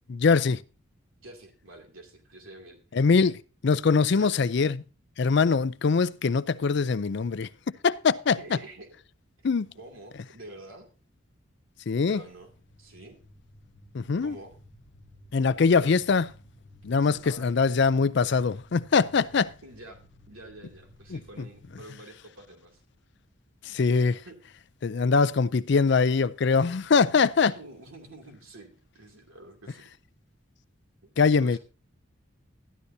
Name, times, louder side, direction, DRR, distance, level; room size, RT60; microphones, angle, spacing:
voice 1, 0.1-0.6 2.9-4.8 5.2-7.5 7.8-8.6 9.4-9.7 11.9-12.2 13.9-14.4 15.3-16.3 16.8-19.5 21.1-21.2 23.6-24.2 24.8-27.6 31.2-31.6, left 5 dB, 55° left, 0.4 m, -23 dB
voice 2, 1.2-2.8 4.1-4.3 8.3-9.0 9.7-10.9 12.1-12.5 12.8-13.2 14.2-14.5 15.7-15.9 17.0-17.5 19.2-20.0 20.3-22.8 24.2-24.3 24.9-25.1 27.4-29.9 31.4-31.6, right 2 dB, 80° right, 2.6 m, -47 dB
sound 1, 11.8-21.8, equal, 30° left, 1.0 m, -56 dB
13.0 x 11.0 x 2.7 m
head